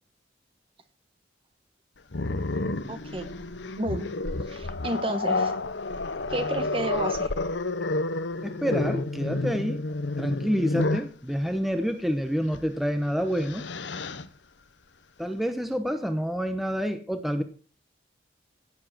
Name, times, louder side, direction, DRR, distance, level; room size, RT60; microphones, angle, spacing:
Growling, 2.1-11.1 12.5-12.7 13.1-14.3, left 2 dB, 85° left, 1.1 m, -30 dB
voice 1, 2.9-3.4 3.8-4.1 4.5-5.5 6.3-7.3, right 1 dB, 30° right, 10 dB, 1.3 m, -31 dB
voice 2, 8.4-9.8 10.2-13.7 15.2-17.4, equal, ahead, 7 dB, 1.0 m, -28 dB
16.5 x 7.5 x 6.0 m, 0.38 s
head